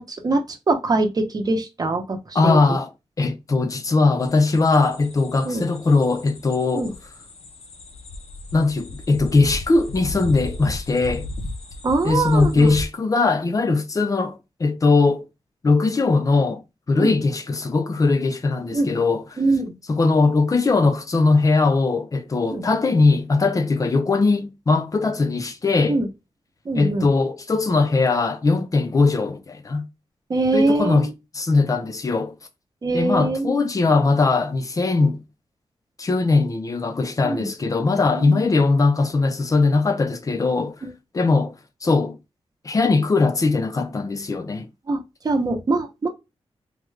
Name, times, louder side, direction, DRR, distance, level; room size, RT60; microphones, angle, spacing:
voice 1, 0.0-2.8 5.4-5.7 6.7-6.9 11.8-12.7 17.0-17.1 18.7-18.9 19.4-19.7 22.5-22.7 25.9-26.1 26.7-27.1 30.3-31.1 32.8-33.6 37.2-37.5 38.1-38.5 40.8-40.9 44.9-45.0 45.2-46.1, right 2 dB, 35° right, 0.8 m, -23 dB
voice 2, 2.3-2.9 3.2-6.9 8.5-11.3 12.0-15.3 15.6-16.6 16.9-19.4 19.9-26.0 26.7-29.9 30.5-32.3 32.9-35.2 36.0-40.8 41.1-41.5 41.8-42.2 42.6-44.7, left 3 dB, 30° left, 0.5 m, -20 dB
sound 1, 4.2-12.9, left 2 dB, 70° left, 0.7 m, -35 dB
3.7 x 2.3 x 3.2 m
wide cardioid pair, 160°, 11 cm